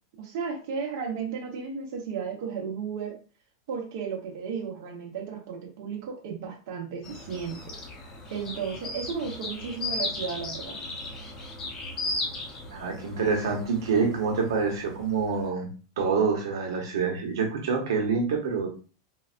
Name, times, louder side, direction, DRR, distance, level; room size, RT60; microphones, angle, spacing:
voice 1, 0.2-3.2 3.7-7.6 8.3-10.8, right 6 dB, 55° right, 0 dB, 0.9 m, -34 dB
sound 1, 7.0-15.4, left 2 dB, 20° left, 0.7 m, -36 dB
voice 2, 12.7-15.7 16.0-18.7, right 5 dB, 85° right, 1 dB, 1.0 m, -26 dB
4.0 x 2.1 x 2.4 m, 0.35 s
supercardioid pair, 160°, 2 cm